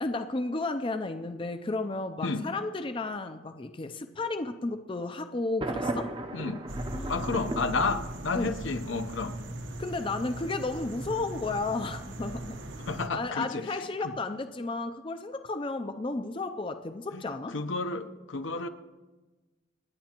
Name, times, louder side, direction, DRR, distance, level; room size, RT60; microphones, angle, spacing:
voice 1, 0.0-6.1 6.9-7.3 8.3-8.5 9.8-12.6 13.1-17.5, left 3 dB, 25° left, 8 dB, 0.4 m, -33 dB
Thunder, 5.6-8.6, right 2 dB, 25° right, 0.6 m, -36 dB
sound 1, 6.7-13.1, right 1 dB, 70° right, 1.0 m, -39 dB
voice 2, 7.1-9.4 12.8-14.1 17.1-18.7, left 3 dB, 75° left, 9 dB, 0.8 m, -31 dB
28.5 x 9.5 x 3.0 m, 1.2 s
head